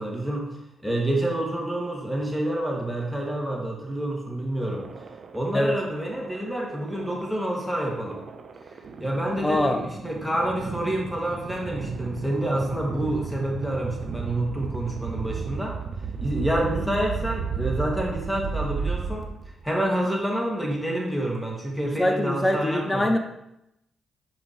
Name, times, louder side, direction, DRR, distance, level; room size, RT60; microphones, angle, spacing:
voice 1, 0.0-4.9 5.3-8.2 9.0-15.8 16.2-19.3 19.6-23.1, right 1 dB, ahead, -1 dB, 2.5 m, -28 dB
sound 1, 4.6-19.7, right 5 dB, 55° right, 0.9 m, -34 dB
voice 2, 9.4-9.8 16.6-16.8 21.8-23.2, left 1 dB, 20° left, 6 dB, 0.9 m, -24 dB
10.5 x 5.2 x 3.3 m, 0.84 s
hypercardioid pair, 40°, 0 cm